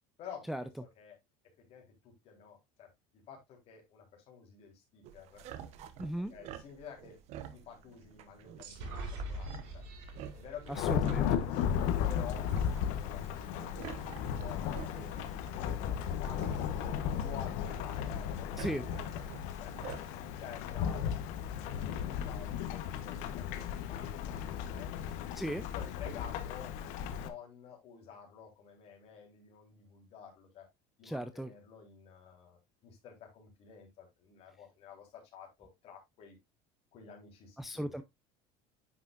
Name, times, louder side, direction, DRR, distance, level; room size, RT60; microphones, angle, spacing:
voice 1, 0.2-1.2 1.7-2.9 3.3-5.4 6.2-7.2 7.5-9.8 10.3-14.0 14.4-16.8 17.2-19.2 19.6-19.7 20.1-24.9 25.7-30.7 31.0-36.4 36.9-38.0, left 7 dB, 45° left, 3.7 m, -51 dB
sound 1, 5.0-20.4, right 10 dB, 50° right, 1.0 m, -50 dB
voice 2, 6.0-6.3 10.8-11.3 18.6-18.8 25.4-25.6 31.0-31.5 37.6-38.0, equal, ahead, 0.4 m, -36 dB
sound 2, 8.6-12.3, right 1 dB, 80° right, 5.6 m, -44 dB
Thunderstorm / Rain, 10.7-27.3, left 9 dB, 65° left, 1.0 m, -35 dB
9.5 x 5.9 x 2.5 m
cardioid pair, 150°, 14 cm